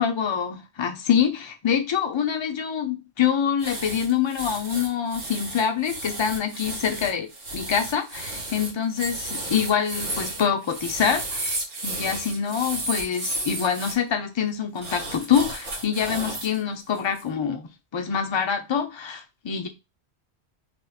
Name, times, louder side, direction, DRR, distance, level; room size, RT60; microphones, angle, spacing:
voice 1, 0.0-7.3 7.5-19.7, left 7 dB, 50° left, 0.3 m, -25 dB
sound 1, 3.6-13.9 14.8-16.6 16.9-17.2, right 2 dB, 80° right, 1.4 m, -33 dB
2.8 x 2.3 x 3.4 m
omnidirectional pair, 1.1 m